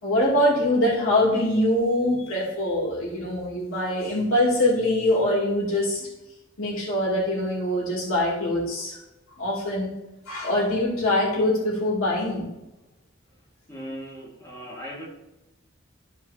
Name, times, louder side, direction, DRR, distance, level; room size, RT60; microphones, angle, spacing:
voice 1, 0.0-6.1 6.6-9.0 9.4-9.9 10.3-12.5, left 1 dB, 90° left, -5 dB, 2.6 m, -23 dB
voice 2, 13.7-15.1, equal, 15° left, -4 dB, 1.8 m, -38 dB
13.0 x 4.8 x 2.8 m, 1.0 s
head